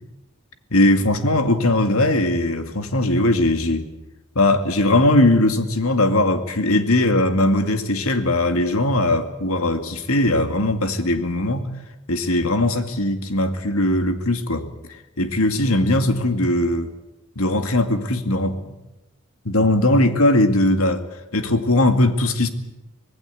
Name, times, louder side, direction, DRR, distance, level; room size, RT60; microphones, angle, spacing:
voice 1, 0.7-3.9 4.4-11.7 12.1-14.7 15.2-16.9 17.4-18.6 19.4-21.0 21.3-22.5, left 1 dB, 75° left, 8 dB, 2.2 m, -19 dB
25.0 x 18.5 x 8.4 m, 0.97 s
head